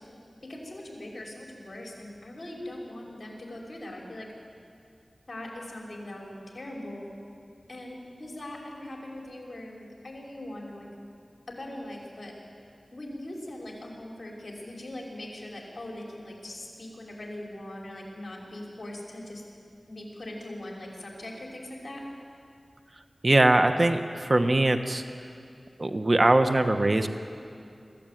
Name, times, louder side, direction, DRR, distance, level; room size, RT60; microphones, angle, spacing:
voice 1, 0.4-4.3 5.3-7.1 7.7-10.9 11.5-12.3 12.9-19.4 19.9-22.0, left 1 dB, 55° left, -1 dB, 5.6 m, -41 dB
voice 2, 23.2-25.0 25.8-27.1, right 2 dB, 45° right, 7 dB, 1.3 m, -22 dB
24.5 x 15.5 x 9.3 m, 2.4 s
wide cardioid pair, 55°, 0 cm